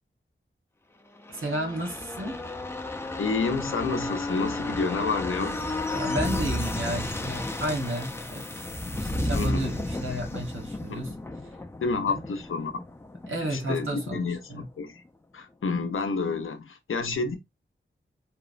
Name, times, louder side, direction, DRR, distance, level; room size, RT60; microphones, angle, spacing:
sound 1, 1.2-14.6 15.0-15.1, left 1 dB, 10° left, 0.4 m, -33 dB
voice 1, 1.3-2.4 5.9-8.6 9.0-11.1 11.4-11.6 12.1-12.2 13.3-14.7, right 1 dB, 80° right, 1.1 m, -32 dB
voice 2, 3.2-5.6 9.3-9.7 11.8-12.7 13.5-15.0 15.3-17.4, left 4 dB, 85° left, 0.6 m, -29 dB
2.9 x 2.0 x 2.4 m
wide cardioid pair, 85°, 21 cm